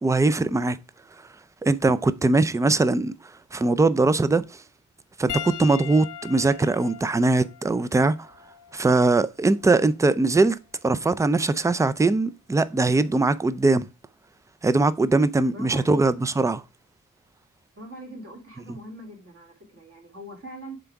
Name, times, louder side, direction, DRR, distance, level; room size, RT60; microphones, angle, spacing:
voice 1, 0.0-0.8 1.6-3.1 3.5-4.6 5.2-8.3 8.7-10.6 10.8-13.9 14.6-16.6, right 3 dB, 10° right, 0.4 m, -21 dB
Piano, 5.3-10.0 10.9-11.1 13.0-13.1, left 10 dB, 80° left, 0.9 m, -40 dB
voice 2, 15.5-16.0 17.8-20.8, right 1 dB, 45° right, 2.5 m, -42 dB
7.6 x 3.5 x 4.6 m
wide cardioid pair, 130°, 31 cm